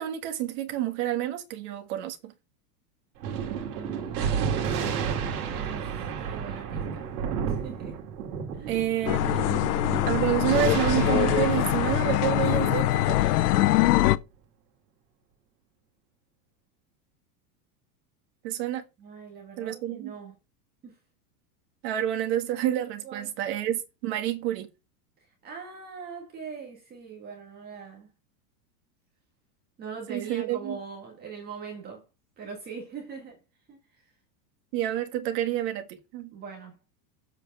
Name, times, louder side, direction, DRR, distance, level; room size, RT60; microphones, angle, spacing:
voice 1, 0.0-2.3 8.7-9.5 10.0-13.3 18.4-18.8 19.6-20.1 21.8-24.7 30.1-30.8 34.7-36.4, right 11 dB, 40° right, 1.7 m, -29 dB
Thunder, 3.2-14.1, right 7 dB, 65° right, 2.6 m, -32 dB
voice 2, 3.7-5.0 5.5-7.1 7.5-8.0 8.5-8.7 19.0-20.3 20.8-21.0 23.0-23.3 25.4-28.1 29.8-32.0 32.4-33.4 33.7-34.1 36.3-36.8, right 6 dB, 20° right, 1.9 m, -42 dB
sound 1, 9.1-14.2, left 15 dB, 75° left, 0.8 m, -23 dB
7.9 x 5.1 x 5.6 m
supercardioid pair, 170°, 47 cm